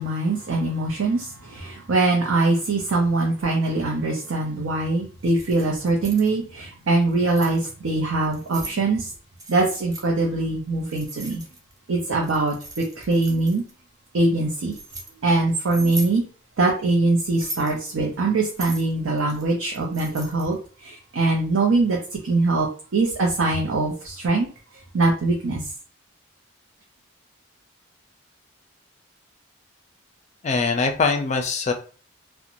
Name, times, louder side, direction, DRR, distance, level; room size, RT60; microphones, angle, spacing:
voice 1, 0.0-9.1 9.5-11.4 11.9-12.5 13.0-13.6 14.1-14.7 15.2-16.2 16.6-22.0 22.2-22.7 22.9-24.5 24.9-25.6, right 2 dB, 85° right, -1 dB, 0.6 m, -22 dB
Keys jangling, 5.2-6.3 7.0-7.6 8.2-8.8 9.4-10.1 10.9-11.8 12.2-13.7 14.4-15.1 15.7-16.2 17.2-17.8 18.4-20.5, right 1 dB, 15° right, 0.5 m, -38 dB
voice 2, 30.4-31.7, left 4 dB, 35° left, 5 dB, 0.4 m, -22 dB
2.5 x 2.1 x 2.9 m, 0.39 s
head